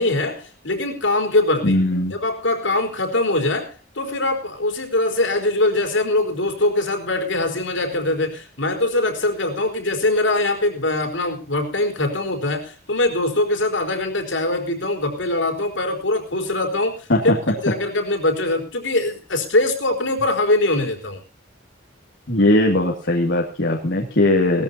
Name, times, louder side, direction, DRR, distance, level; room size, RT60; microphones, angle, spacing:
voice 1, 0.0-1.8 2.1-21.2, left 2 dB, 80° left, 4 dB, 4.5 m, -22 dB
voice 2, 1.6-2.1 17.1-17.7 22.3-24.6, left 1 dB, 65° left, -1 dB, 2.4 m, -19 dB
20.5 x 14.5 x 2.8 m, 0.34 s
head